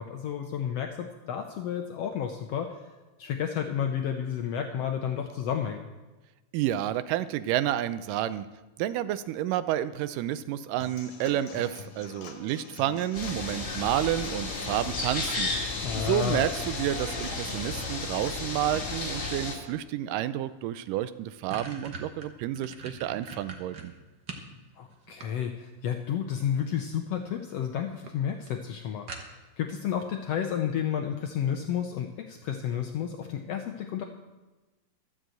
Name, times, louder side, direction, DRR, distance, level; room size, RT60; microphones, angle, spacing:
voice 1, 0.0-2.8 3.2-5.9 15.8-16.5 24.8-29.1 29.6-34.0, left 9 dB, 85° left, 4 dB, 1.4 m, -31 dB
voice 2, 6.5-8.5 8.8-23.9, right 12 dB, 85° right, 14 dB, 2.2 m, -30 dB
Human voice / Acoustic guitar / Drum, 10.8-18.8, left 7 dB, 70° left, 2.6 m, -45 dB
sound 1, 13.1-19.6, left 3 dB, 35° left, 2.4 m, -33 dB
sound 2, 20.6-20.7 21.0-24.5 24.9-25.8 26.9-27.3 27.6-27.7 28.1-28.2 28.5-28.6 29.1-29.6, right 4 dB, 55° right, 1.1 m, -42 dB
12.5 x 7.6 x 7.8 m, 1.2 s
omnidirectional pair, 3.8 m